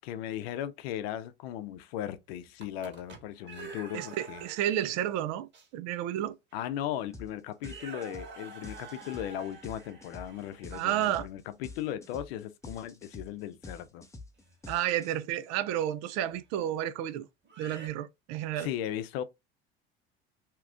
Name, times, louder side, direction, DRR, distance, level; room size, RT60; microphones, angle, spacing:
voice 1, 0.0-4.4 6.5-14.0 18.6-19.2, left 11 dB, 75° left, 0.6 m, -37 dB
sound 1, 2.4-4.9 5.5-5.7 6.5-6.6 6.9-7.2 7.6-11.2 14.4-14.6 16.3-16.4 17.4-17.9, right 4 dB, 35° right, 1.5 m, -47 dB
voice 2, 3.9-6.4 10.7-11.3 14.7-17.2 17.6-18.7, right 12 dB, 55° right, 0.5 m, -31 dB
sound 2, 7.1-7.3 7.6-15.4, left 2 dB, 10° left, 0.6 m, -47 dB
2.9 x 2.4 x 3.5 m
hypercardioid pair, 80°, 31 cm